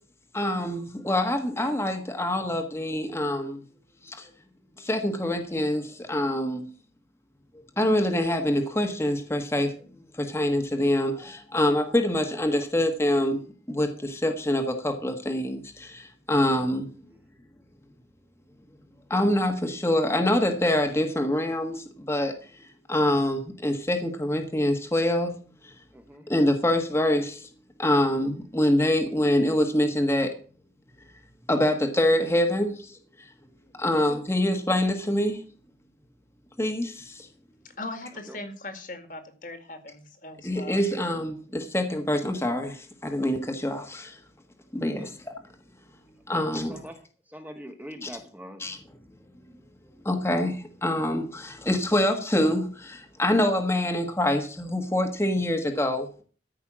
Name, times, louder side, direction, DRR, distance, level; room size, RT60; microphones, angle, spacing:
voice 1, 0.3-3.6 4.0-4.3 4.8-6.6 7.8-9.7 10.2-13.4 13.7-16.9 19.1-22.3 22.9-25.3 25.6-25.7 26.3-27.5 27.8-30.3 31.5-33.3 33.8-35.4 36.6-37.3 40.4-44.2 44.7-45.3 46.3-46.7 48.0-48.1 48.6-48.8 50.0-56.2, left 1 dB, 15° left, 4 dB, 1.4 m, -25 dB
voice 2, 25.9-26.3 33.8-34.0 38.3-38.4 45.0-45.1 46.3-48.8, equal, 10° right, 5 dB, 1.1 m, -43 dB
voice 3, 37.8-40.8, left 2 dB, 45° left, 8 dB, 2.0 m, -39 dB
14.0 x 5.7 x 7.3 m, 0.41 s
head